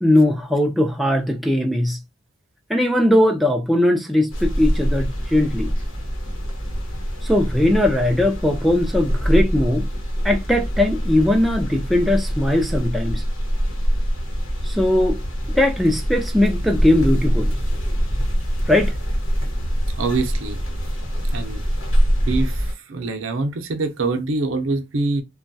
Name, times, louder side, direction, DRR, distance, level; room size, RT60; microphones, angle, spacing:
voice 1, 0.0-2.0 2.7-5.7 7.2-9.9 10.2-13.2 14.7-15.2 15.6-17.5 18.7-18.9, left 1 dB, ahead, 0.4 m, -19 dB
sound 1, 4.3-22.7, equal, 90° left, 1.0 m, -24 dB
voice 2, 20.0-20.6 21.3-21.6 22.3-25.2, right 3 dB, 75° right, 0.6 m, -24 dB
3.0 x 2.2 x 2.6 m
head